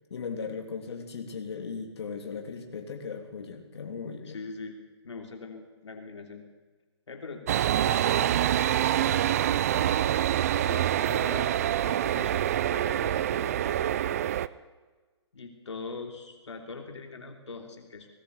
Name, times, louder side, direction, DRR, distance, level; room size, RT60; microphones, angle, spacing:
voice 1, 0.1-4.4, left 5 dB, 65° left, 3 dB, 3.3 m, -37 dB
voice 2, 4.2-6.4 7.1-7.5 7.8-8.4 8.9-9.9 10.6-14.3 15.3-18.1, left 4 dB, 80° left, 3 dB, 3.1 m, -42 dB
sound 1, 7.5-14.5, right 11 dB, 35° right, 0.5 m, -26 dB
20.0 x 16.5 x 8.2 m, 1.3 s
hypercardioid pair, 160°, 15 cm